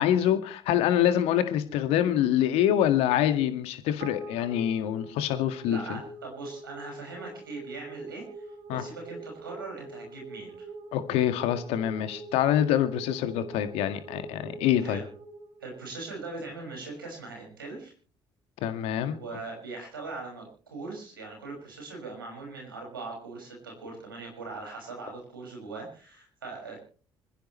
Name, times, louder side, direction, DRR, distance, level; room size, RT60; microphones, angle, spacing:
voice 1, 0.0-6.0 8.7-8.8 10.9-15.0 18.6-19.2, left 11 dB, 60° left, 9 dB, 1.9 m, -25 dB
sound 1, 4.0-16.5, right 2 dB, 60° right, 4.5 m, -44 dB
voice 2, 5.7-10.7 14.8-15.1 15.6-17.9 19.1-26.8, right 3 dB, 80° right, 0 dB, 6.1 m, -40 dB
26.0 x 15.0 x 3.2 m, 0.41 s
figure-of-eight pair, 45°, 11 cm